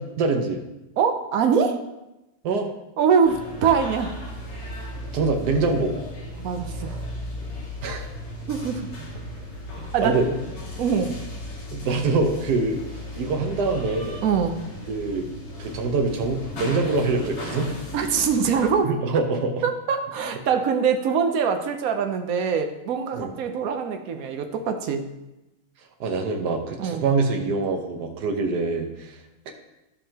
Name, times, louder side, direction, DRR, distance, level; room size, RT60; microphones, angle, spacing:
voice 1, 0.2-0.6 2.4-2.7 5.1-6.0 7.8-8.1 10.0-10.3 11.7-12.8 13.2-14.2 14.9-15.3 15.6-17.7 18.8-19.6 23.1-23.3 26.0-29.2, right 3 dB, 55° right, 3 dB, 1.3 m, -24 dB
voice 2, 1.0-1.8 3.0-4.1 6.4-7.0 8.5-8.8 9.9-10.2 10.8-11.2 14.2-14.6 17.9-18.9 19.6-25.0 26.8-27.0, right 6 dB, 75° right, 5 dB, 0.8 m, -23 dB
sound 1, 3.2-18.7, left 1 dB, 90° left, 2.9 m, -36 dB
14.0 x 5.5 x 2.9 m, 0.95 s
omnidirectional pair, 2.4 m